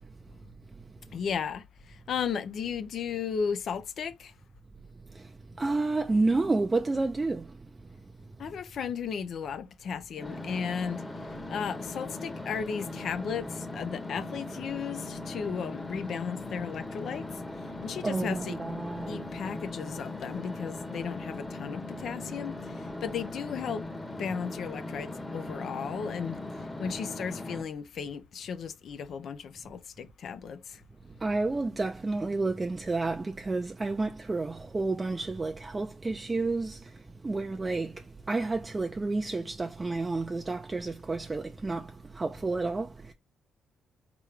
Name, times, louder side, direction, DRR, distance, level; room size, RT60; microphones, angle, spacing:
voice 1, 1.1-4.3 8.4-18.6 19.1-23.9 24.2-30.8, left 6 dB, 60° left, 0.5 m, -35 dB
voice 2, 5.6-7.5 18.0-19.2 31.2-36.9 37.2-43.1, right 3 dB, 25° right, 0.4 m, -30 dB
sound 1, 10.2-27.6, left 2 dB, 15° left, 1.0 m, -39 dB
3.7 x 3.1 x 3.2 m
cardioid pair, 90°, 0 cm